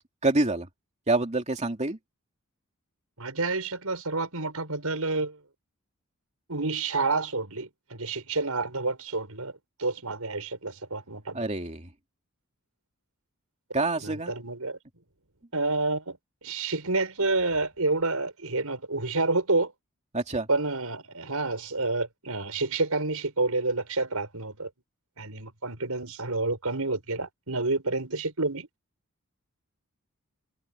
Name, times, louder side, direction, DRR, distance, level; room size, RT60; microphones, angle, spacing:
voice 1, 0.2-0.7 1.1-2.0 11.3-11.9 13.7-14.3 20.1-20.5, right 2 dB, 30° right, 2.7 m, -26 dB
voice 2, 3.2-5.4 6.5-9.5 9.8-11.4 14.0-14.8 15.5-16.2 16.4-19.7 20.5-24.7 25.2-28.7, right 3 dB, 85° right, 5.3 m, -29 dB
head